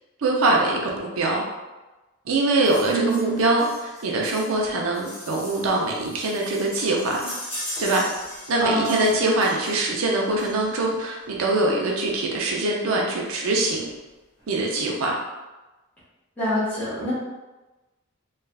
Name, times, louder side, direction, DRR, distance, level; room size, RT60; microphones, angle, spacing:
voice 1, 0.2-1.4 2.3-7.3 7.8-8.0 8.5-13.9 14.5-15.2, right 2 dB, 80° right, -1 dB, 0.5 m, -23 dB
sound 1, 2.6-11.0 12.1-12.2 12.5-12.6 12.8-13.0 13.3-13.9 14.4-14.5, left 1 dB, 25° left, 0.8 m, -39 dB
voice 2, 2.8-3.5 8.6-9.2 16.4-17.1, right 2 dB, 10° left, -11 dB, 1.3 m, -25 dB
3.2 x 2.3 x 2.3 m, 1.1 s
head